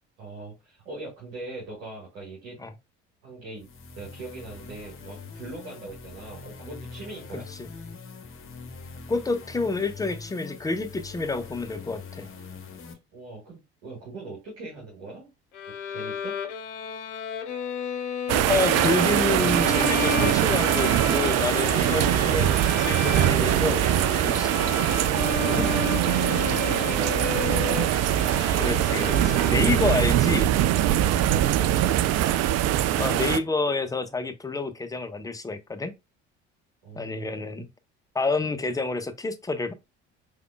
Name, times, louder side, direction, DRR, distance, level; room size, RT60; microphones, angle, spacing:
voice 1, 0.2-2.6 3.2-3.7 3.9-7.5 13.1-15.3 15.9-16.4 25.9-28.0 36.8-37.6, right 3 dB, 70° right, 2.2 m, -41 dB
sound 1, 3.6-12.9, left 4 dB, 35° left, 1.0 m, -43 dB
voice 2, 7.3-7.7 9.1-12.3 18.5-23.8 24.2-24.6 25.5-25.7 28.6-30.5 32.9-35.9 37.0-37.7 38.1-39.7, left 3 dB, 10° left, 0.6 m, -28 dB
Bowed string instrument, 15.5-30.2, left 7 dB, 80° left, 0.6 m, -33 dB
sound 2, 18.3-33.4, right 12 dB, 45° right, 0.5 m, -22 dB
4.8 x 3.4 x 2.3 m
figure-of-eight pair, 55°, 35 cm